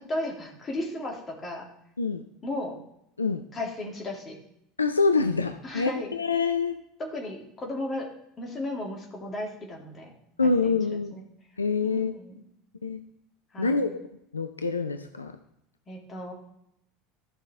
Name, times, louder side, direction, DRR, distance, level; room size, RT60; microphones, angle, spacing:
voice 1, 0.1-1.6 2.4-2.7 3.5-4.3 5.6-6.4 7.0-8.1 8.4-10.1 10.4-11.2 11.8-12.4 13.5-14.0 15.9-16.3, left 1 dB, 25° left, 0 dB, 2.7 m, -35 dB
voice 2, 4.8-6.8 10.4-11.2 11.6-12.1 12.8-13.0 13.6-14.0 14.3-15.3, left 4 dB, 80° left, 8 dB, 0.5 m, -26 dB
14.0 x 5.7 x 3.6 m, 0.78 s
figure-of-eight pair, 70°, 0 cm